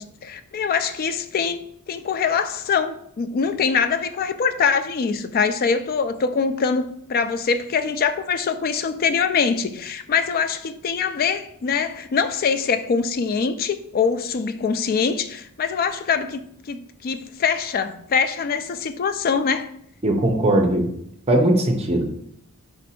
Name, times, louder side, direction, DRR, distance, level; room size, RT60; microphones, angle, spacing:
voice 1, 0.0-1.6 1.9-19.7, left 5 dB, 40° left, 10 dB, 0.3 m, -23 dB
voice 2, 20.0-20.9 21.3-22.1, right 1 dB, 30° right, 3 dB, 0.6 m, -19 dB
4.6 x 2.6 x 4.2 m, 0.69 s
head